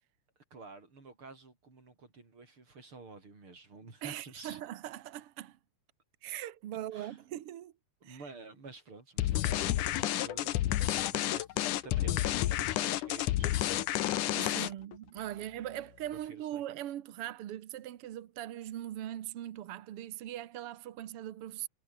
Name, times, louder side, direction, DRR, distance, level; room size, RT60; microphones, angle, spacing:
voice 1, 0.5-4.6 6.9-7.2 8.0-10.6 10.8-14.8 16.2-16.6, right 3 dB, 35° right, 6.0 m, -51 dB
voice 2, 4.0-5.6 6.2-7.7 8.0-8.2 14.3-21.7, right 12 dB, 80° right, 1.3 m, -41 dB
sound 1, 9.2-14.9, left 14 dB, 70° left, 2.4 m, -30 dB
omnidirectional pair, 4.3 m